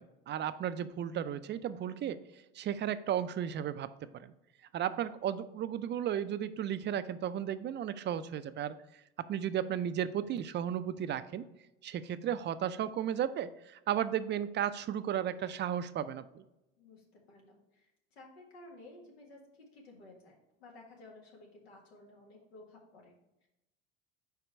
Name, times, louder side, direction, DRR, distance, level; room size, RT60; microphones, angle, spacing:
voice 1, 0.0-2.2 2.5-4.3 4.7-8.8 9.2-11.5 11.8-16.4, right 10 dB, 35° right, 13 dB, 0.4 m, -34 dB
voice 2, 16.8-23.5, left 2 dB, 90° left, 0 dB, 1.7 m, -55 dB
4.9 x 4.6 x 5.5 m, 0.92 s
hypercardioid pair, 85°, 31 cm